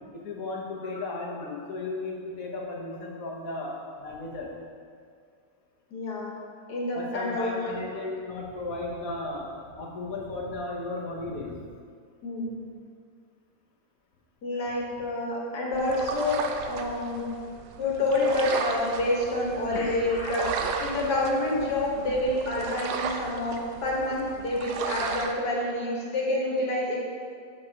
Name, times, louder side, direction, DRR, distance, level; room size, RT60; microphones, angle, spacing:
voice 1, 0.1-4.5 6.9-11.6 19.7-20.0, left 2 dB, 65° left, -2 dB, 1.4 m, -35 dB
voice 2, 5.9-6.4 6.7-7.8 12.2-12.6 14.4-17.3 17.8-27.0, left 1 dB, 80° left, -3 dB, 1.9 m, -28 dB
sound 1, 15.7-25.3, right 5 dB, 85° right, 1.1 m, -35 dB
8.5 x 6.2 x 2.9 m, 2.2 s
omnidirectional pair, 1.7 m